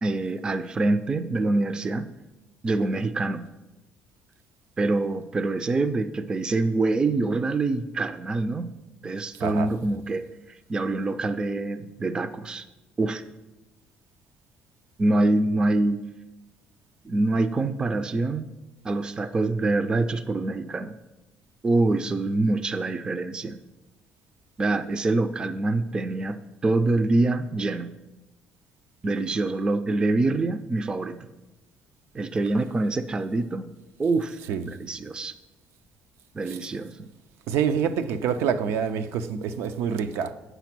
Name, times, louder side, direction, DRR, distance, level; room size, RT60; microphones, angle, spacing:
voice 1, 0.0-2.1 2.6-3.4 4.8-8.7 9.0-10.3 10.7-12.6 13.0-13.2 15.0-16.0 17.0-18.5 18.8-21.0 21.6-23.6 24.6-27.9 29.0-31.3 32.1-33.7 34.0-34.4 34.6-35.3 36.3-37.1, right 2 dB, 20° right, 0.4 m, -25 dB
voice 2, 37.5-40.3, right 7 dB, 90° right, 0.6 m, -26 dB
8.1 x 5.9 x 6.0 m
cardioid pair, 145°, 4 cm